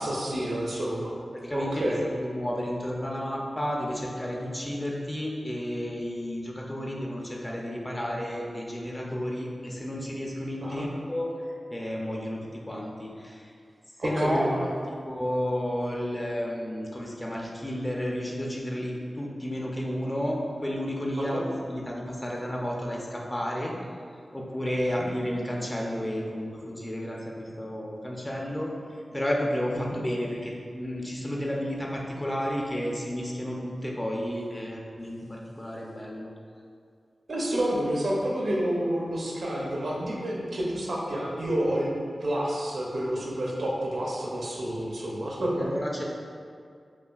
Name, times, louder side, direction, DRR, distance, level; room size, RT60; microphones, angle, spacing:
voice 1, 0.0-1.2 1.5-2.0 10.6-10.9 14.0-14.7 21.2-21.4 24.9-25.1 29.8-30.0 37.3-41.9 42.2-45.7, right 1 dB, 75° right, -3 dB, 0.6 m, -29 dB
voice 2, 1.3-11.3 11.7-13.5 14.0-14.5 15.1-21.4 21.7-23.7 24.3-28.7 29.1-36.3 45.6-46.0, equal, 20° left, -2 dB, 0.6 m, -32 dB
5.4 x 2.5 x 2.4 m, 2.2 s
cardioid pair, 55°, 0 cm